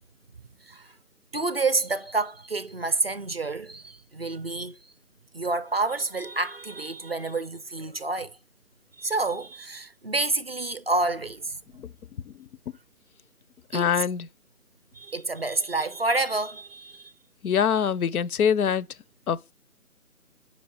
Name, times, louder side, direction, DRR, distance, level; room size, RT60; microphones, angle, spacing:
voice 1, 1.3-4.8 5.3-8.3 9.0-11.6 13.7-14.1 14.9-17.1, right 3 dB, 45° right, 0.4 m, -28 dB
voice 2, 13.7-14.3 17.4-18.9 19.3-19.5, left 7 dB, 75° left, 0.5 m, -24 dB
5.3 x 5.2 x 4.2 m
figure-of-eight pair, 160°, 44 cm